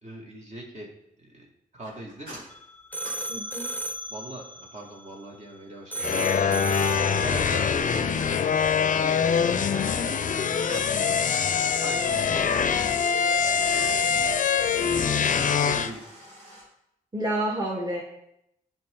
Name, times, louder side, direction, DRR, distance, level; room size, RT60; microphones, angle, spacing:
voice 1, 0.0-0.9 1.2-1.5 1.7-2.4 4.1-6.1 6.4-10.1 10.7-11.3 11.8-12.9 13.7-13.9 14.6-14.9 15.3-16.0, right 1 dB, 45° right, -2 dB, 2.2 m, -41 dB
sound 1, 1.8-4.1 7.4-8.7 9.2-12.2 15.5-16.6, right 1 dB, 90° right, 3.3 m, -47 dB
sound 2, 2.5-5.6 5.9-7.9, right 1 dB, 10° left, 0.7 m, -35 dB
voice 2, 3.3-3.7 5.9-6.0 17.1-18.0, right 1 dB, 25° right, -2 dB, 1.7 m, -29 dB
sound 3, 6.0-15.9, left 6 dB, 55° left, 0.5 m, -24 dB
10.5 x 4.6 x 3.8 m, 0.80 s
supercardioid pair, 45°, 16 cm